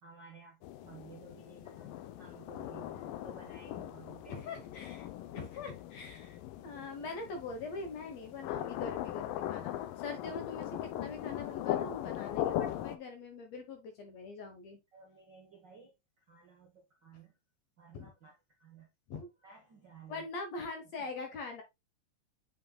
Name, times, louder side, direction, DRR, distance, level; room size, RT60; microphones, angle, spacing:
voice 1, 0.0-4.4 4.8-4.9 14.9-17.3 17.8-18.9 19.4-20.2 21.0-21.1, right 5 dB, 55° right, 1.2 m, -55 dB
sound 1, 0.6-13.0, left 12 dB, 85° left, 2.3 m, -39 dB
voice 2, 4.3-5.1 5.3-14.8 17.9-18.1 19.1-19.3 20.1-21.6, left 3 dB, 65° left, 1.9 m, -43 dB
7.3 x 5.7 x 2.2 m
omnidirectional pair, 3.9 m